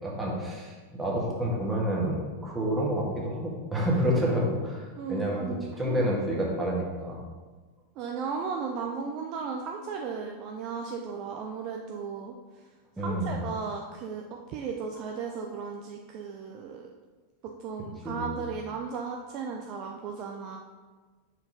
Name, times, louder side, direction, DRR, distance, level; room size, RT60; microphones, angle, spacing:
voice 1, 0.0-5.4 5.7-7.2 13.0-13.4 18.0-18.4, equal, 10° right, -4 dB, 1.8 m, -29 dB
voice 2, 4.9-6.1 8.0-12.6 13.0-16.9 17.6-20.6, right 5 dB, 40° right, 2 dB, 0.5 m, -35 dB
5.6 x 4.7 x 5.3 m, 1.4 s
figure-of-eight pair, 90°, 0 cm